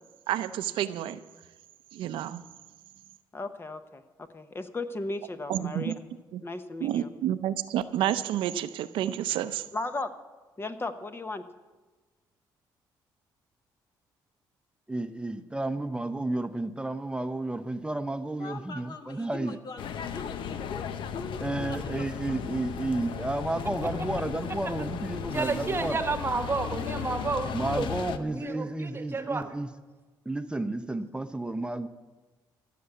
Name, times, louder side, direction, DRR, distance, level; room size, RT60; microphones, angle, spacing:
voice 1, 0.3-1.2 1.9-2.4 5.5-5.9 6.3-6.4 6.8-9.6, right 11 dB, 80° right, 12 dB, 0.6 m, -29 dB
voice 2, 3.3-4.0 4.3-5.9 6.4-7.1 9.7-10.1 10.6-11.5, left 2 dB, 25° left, 10 dB, 1.0 m, -35 dB
voice 3, 14.9-19.6 21.4-26.0 27.5-29.7 30.3-31.9, right 2 dB, 10° right, 10 dB, 0.7 m, -32 dB
voice 4, 18.4-22.4, left 4 dB, 50° left, 7 dB, 1.3 m, -42 dB
sound 1, 19.8-28.2, left 8 dB, 75° left, 0.8 m, -35 dB
voice 5, 25.3-27.9 28.2-29.5, right 4 dB, 30° right, 8 dB, 1.2 m, -31 dB
15.5 x 6.9 x 8.2 m, 1.2 s
cardioid pair, 80°, 9 cm